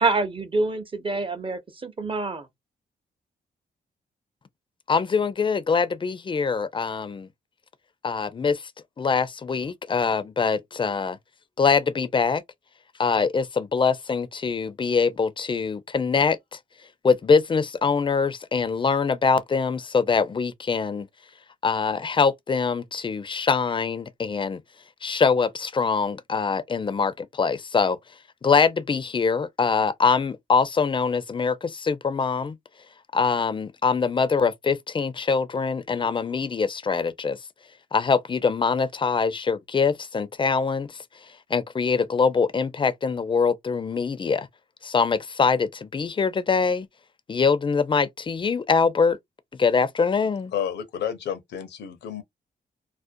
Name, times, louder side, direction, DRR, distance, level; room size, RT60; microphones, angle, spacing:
voice 1, 0.0-2.5, right 3 dB, 30° right, 0.6 m, -26 dB
voice 2, 4.9-7.3 8.0-8.6 9.0-11.2 11.6-12.4 13.0-16.4 17.0-21.1 21.6-24.6 25.0-28.0 28.4-32.6 33.1-37.4 37.9-40.9 41.5-44.5 44.8-46.9 47.3-49.2 49.6-50.5, left 5 dB, 30° left, 0.4 m, -23 dB
voice 3, 50.5-52.2, left 9 dB, 80° left, 0.6 m, -30 dB
2.5 x 2.1 x 2.5 m
cardioid pair, 85°, 18 cm